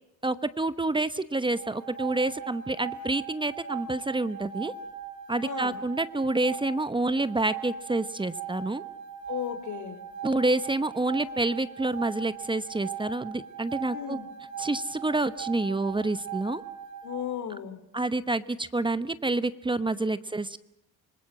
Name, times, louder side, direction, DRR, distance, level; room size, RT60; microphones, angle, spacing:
voice 1, 0.2-4.7 5.3-8.8 10.2-14.2 14.6-16.6 17.9-20.6, right 2 dB, 15° right, 14 dB, 0.9 m, -28 dB
sound 1, 1.4-17.3, right 6 dB, 75° right, 2.9 m, -40 dB
voice 2, 5.4-5.7 9.3-10.0 13.9-14.2 17.0-17.8, left 9 dB, 70° left, 11 dB, 2.9 m, -35 dB
26.0 x 20.0 x 7.5 m, 0.87 s
cardioid pair, 90°, 30 cm